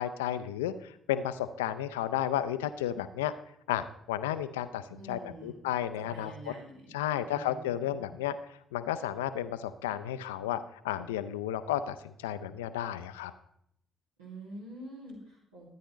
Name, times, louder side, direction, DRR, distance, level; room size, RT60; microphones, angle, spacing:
voice 1, 0.0-3.3 3.7-6.5 6.9-8.4 8.7-10.6 10.8-13.3, left 11 dB, 75° left, 13 dB, 0.4 m, -33 dB
voice 2, 4.9-5.6 6.0-7.9 14.2-15.7, right 1 dB, 80° right, -5 dB, 2.1 m, -47 dB
13.0 x 9.3 x 3.0 m, 0.73 s
figure-of-eight pair, 45°, 0 cm